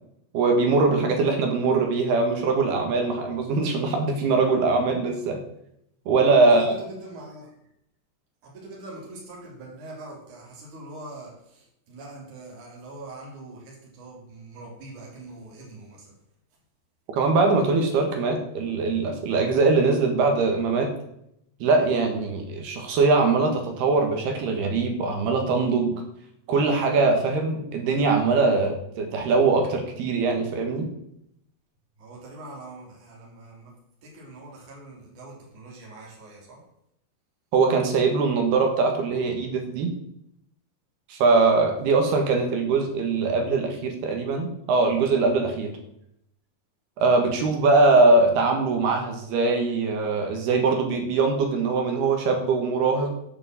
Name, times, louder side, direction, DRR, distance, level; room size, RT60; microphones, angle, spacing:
voice 1, 0.3-5.4 6.1-6.6 17.1-20.9 21.6-25.9 26.5-30.9 37.5-39.9 41.1-45.7 47.0-53.1, right 3 dB, 65° right, 3 dB, 3.3 m, -22 dB
voice 2, 6.4-7.5 8.4-16.2 32.0-33.8 34.0-36.6, right 2 dB, 40° right, -3 dB, 4.9 m, -43 dB
10.5 x 7.0 x 7.8 m, 0.76 s
omnidirectional pair, 5.6 m